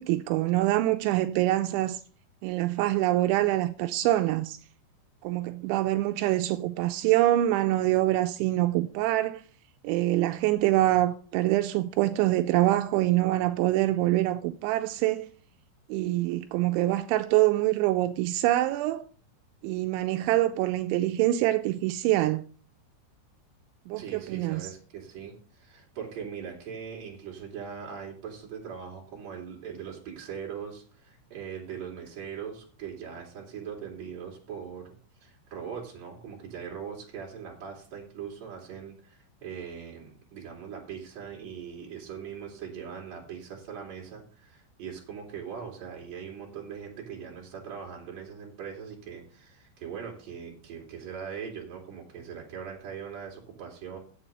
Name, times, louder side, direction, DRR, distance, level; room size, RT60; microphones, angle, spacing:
voice 1, 0.0-2.0 2.4-4.6 5.2-9.4 9.8-15.2 15.9-19.0 19.6-22.4 23.9-24.7, right 16 dB, 90° right, 2.6 m, -25 dB
voice 2, 24.0-34.9 35.2-54.0, right 7 dB, 40° right, 3.5 m, -41 dB
7.5 x 7.4 x 6.6 m
omnidirectional pair, 5.9 m